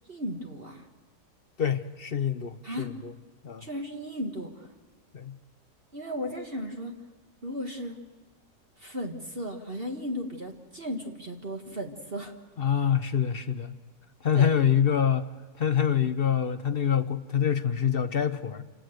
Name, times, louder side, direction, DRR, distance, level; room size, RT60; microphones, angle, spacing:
voice 1, 0.1-0.9 2.6-2.9 3.6-4.7 5.9-7.0 7.4-8.0 8.8-12.3 14.3-14.6, equal, 30° right, 2 dB, 1.8 m, -35 dB
voice 2, 1.6-3.1 3.4-3.6 5.1-5.3 12.6-13.7 14.2-15.3 15.6-18.6, left 8 dB, 45° left, 11 dB, 0.7 m, -25 dB
28.5 x 18.0 x 6.5 m, 1.4 s
omnidirectional pair, 1.9 m